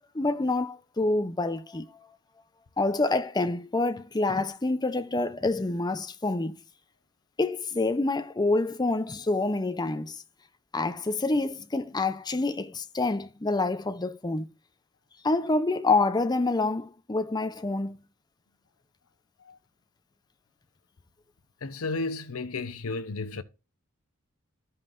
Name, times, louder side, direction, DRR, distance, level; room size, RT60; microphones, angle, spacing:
voice 1, 0.1-1.8 2.8-6.5 7.4-10.2 10.7-14.5 15.2-18.0, left 2 dB, 20° left, 0.6 m, -27 dB
voice 2, 21.6-23.4, left 3 dB, 80° left, 0.8 m, -33 dB
14.0 x 5.5 x 2.5 m
head